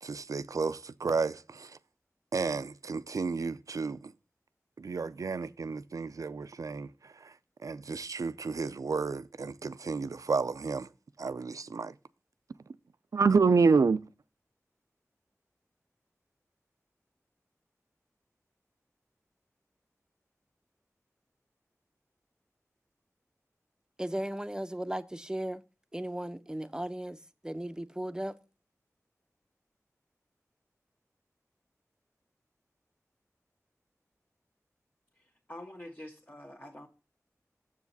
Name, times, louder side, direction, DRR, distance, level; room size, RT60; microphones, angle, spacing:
voice 1, 0.0-1.8 2.3-4.1 4.8-7.3 7.6-10.9 11.2-11.9 13.1-14.0, right 4 dB, 90° right, 0.4 m, -30 dB
voice 2, 24.0-25.6 25.9-27.2 27.4-28.3, right 1 dB, 15° right, 0.6 m, -36 dB
voice 3, 35.5-36.9, left 1 dB, 35° left, 1.2 m, -46 dB
7.2 x 7.2 x 4.0 m
wide cardioid pair, 60°, 6 cm